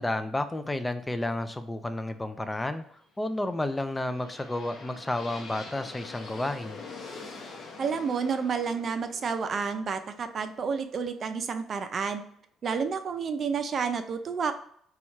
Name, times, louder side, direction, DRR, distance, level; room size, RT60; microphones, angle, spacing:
voice 1, 0.0-6.8, left 1 dB, 10° left, 9 dB, 0.4 m, -31 dB
sound 1, 3.5-11.5, left 3 dB, 45° left, 0.8 m, -45 dB
voice 2, 7.8-12.2 12.6-14.5, right 5 dB, 40° right, 8 dB, 0.5 m, -30 dB
4.1 x 2.4 x 4.4 m, 0.65 s
cardioid pair, 120°, 0 cm